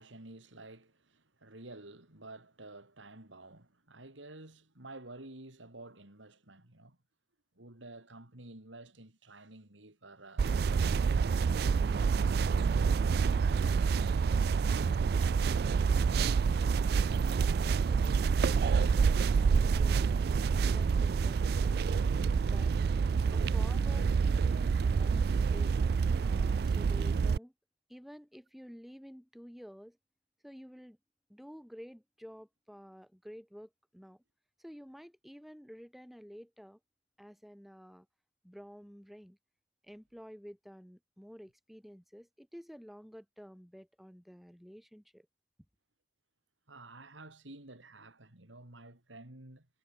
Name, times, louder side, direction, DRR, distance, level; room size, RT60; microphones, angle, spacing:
voice 1, 0.0-7.0 7.6-12.1 12.5-15.2 46.7-49.7, right 2 dB, 85° right, 3.8 m, -51 dB
sound 1, 10.4-27.4, right 5 dB, 55° right, 0.3 m, -27 dB
voice 2, 19.4-20.1 20.5-21.8 22.5-22.7 23.3-25.8 26.2-27.5 27.9-30.0 30.4-31.0 31.3-34.2 34.6-36.8 37.2-38.1 38.4-39.4 39.8-45.3, equal, ahead, 5.0 m, -51 dB
head